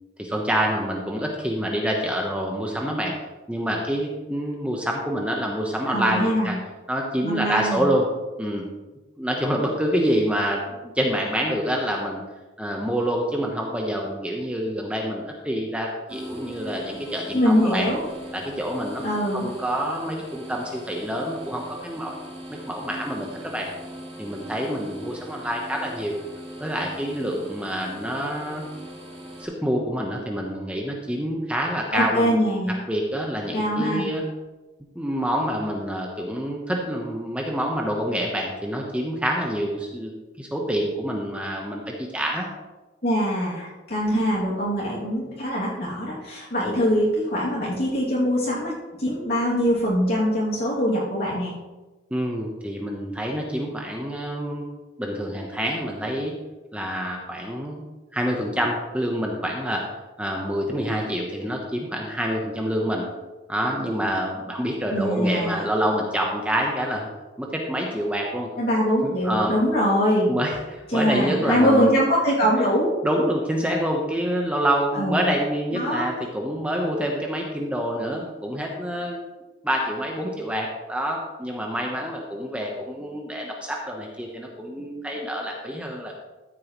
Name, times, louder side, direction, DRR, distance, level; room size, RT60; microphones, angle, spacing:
voice 1, 0.2-3.1 3.5-6.6 6.9-8.1 8.4-8.6 9.2-12.2 12.6-17.9 18.3-19.0 19.3-22.1 22.5-23.7 24.2-26.2 26.6-28.6 29.4-32.3 32.6-34.2 34.9-42.5 52.1-54.7 55.0-56.3 56.7-57.8 58.1-59.8 60.2-63.0 63.5-67.1 67.4-68.5 69.0-69.5 70.3-71.9 73.0-86.2, equal, 5° right, 0 dB, 0.9 m, -27 dB
voice 2, 5.9-6.5 7.2-7.9 17.3-18.0 19.0-19.5 31.9-32.7 33.5-34.1 43.0-48.7 49.0-51.5 64.9-65.6 68.6-70.3 70.9-72.9 74.9-75.3 75.7-76.1, equal, 50° left, -7 dB, 2.6 m, -23 dB
sound 1, 16.1-29.4, equal, 30° right, 3.2 m, -40 dB
13.5 x 8.5 x 3.1 m, 1.2 s
head